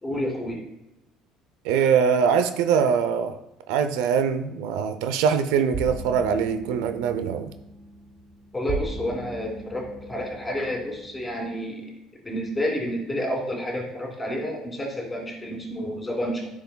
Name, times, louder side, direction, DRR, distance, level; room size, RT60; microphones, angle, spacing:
voice 1, 0.0-0.6 8.5-11.8 12.2-16.5, equal, 15° left, 2.6 m, -30 dB
voice 2, 1.6-3.4 3.7-7.5, right 7 dB, 85° right, 0.5 m, -23 dB
sound 1, 5.7-11.4, right 3 dB, 40° right, 1.2 m, -38 dB
10.5 x 5.8 x 2.2 m
supercardioid pair, 90°, 0 cm